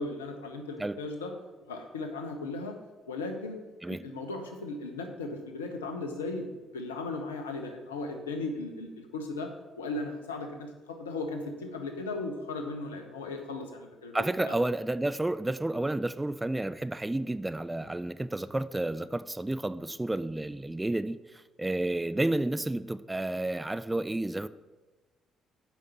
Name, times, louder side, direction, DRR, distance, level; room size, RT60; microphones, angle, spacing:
voice 1, 0.0-1.3 1.7-2.8 3.1-3.6 3.9-9.5 9.8-14.6, left 3 dB, 85° left, 0.9 m, -37 dB
voice 2, 14.1-24.5, right 2 dB, 15° right, 0.4 m, -31 dB
7.4 x 5.3 x 7.0 m
figure-of-eight pair, 45°, 0 cm